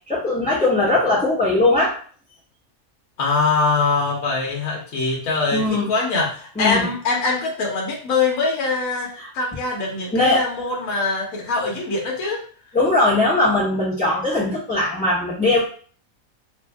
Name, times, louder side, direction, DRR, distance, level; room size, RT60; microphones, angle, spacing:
voice 1, 0.1-2.0 5.5-5.9 6.5-6.9 9.2-9.3 10.1-10.5 12.7-15.6, left 2 dB, 5° left, -10 dB, 1.0 m, -20 dB
voice 2, 3.2-12.4, left 3 dB, 75° left, -1 dB, 1.2 m, -23 dB
3.1 x 2.5 x 3.3 m, 0.44 s
omnidirectional pair, 1.5 m